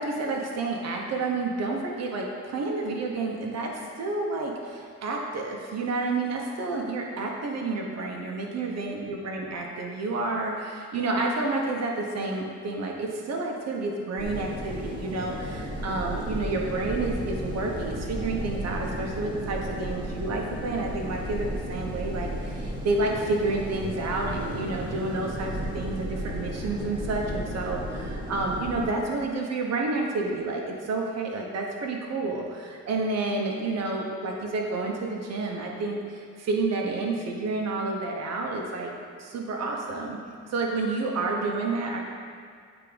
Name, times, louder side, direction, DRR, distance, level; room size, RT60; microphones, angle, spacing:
voice 1, 0.0-38.9 39.2-40.2 40.5-42.0, right 3 dB, 60° right, 0 dB, 1.1 m, -30 dB
sound 1, 14.2-28.9, equal, 15° right, 1.8 m, -34 dB
8.2 x 3.6 x 5.1 m, 2.2 s
cardioid pair, 90°, 30 cm